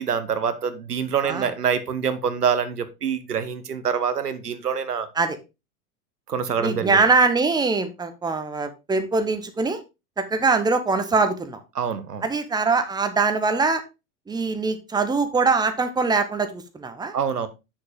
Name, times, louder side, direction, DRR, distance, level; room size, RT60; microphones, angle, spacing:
voice 1, 0.0-5.1 6.3-7.1 11.7-12.2 17.1-17.5, right 7 dB, 85° right, 11 dB, 1.0 m, -25 dB
voice 2, 6.6-9.8 10.2-11.6 12.2-13.8 14.3-17.2, right 4 dB, 10° right, 9 dB, 1.0 m, -22 dB
7.7 x 6.7 x 3.6 m, 0.26 s
figure-of-eight pair, 90°, 46 cm